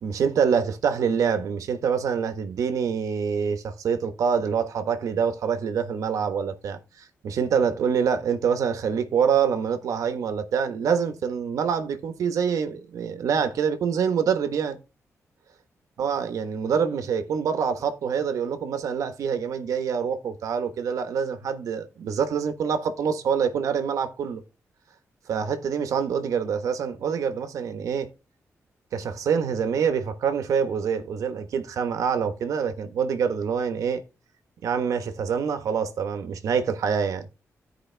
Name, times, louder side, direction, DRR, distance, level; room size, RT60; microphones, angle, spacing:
voice 1, 0.0-14.8 16.0-24.4 25.3-28.1 28.9-34.0 34.6-37.3, right 7 dB, 85° right, 1.3 m, -26 dB
15.0 x 5.0 x 3.4 m
cardioid pair, 105°, 6 cm